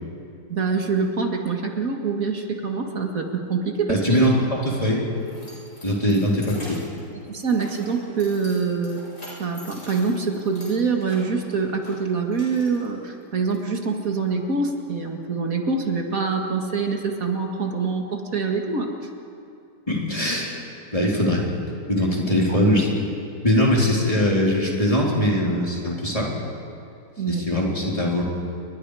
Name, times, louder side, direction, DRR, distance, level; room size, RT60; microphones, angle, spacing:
voice 1, 0.5-4.0 7.1-9.0 9.4-18.9 22.5-22.6 23.5-23.6 27.2-27.4, right 4 dB, 55° right, 3 dB, 2.4 m, -25 dB
voice 2, 3.9-5.1 5.8-6.8 19.9-20.6 20.9-21.5 21.9-23.0 23.4-26.5 27.3-28.2, equal, 20° left, -3 dB, 3.9 m, -21 dB
Keys jangling, 4.5-13.5, left 1 dB, 75° left, 7.6 m, -45 dB
29.5 x 22.5 x 5.0 m, 2.6 s
omnidirectional pair, 1.8 m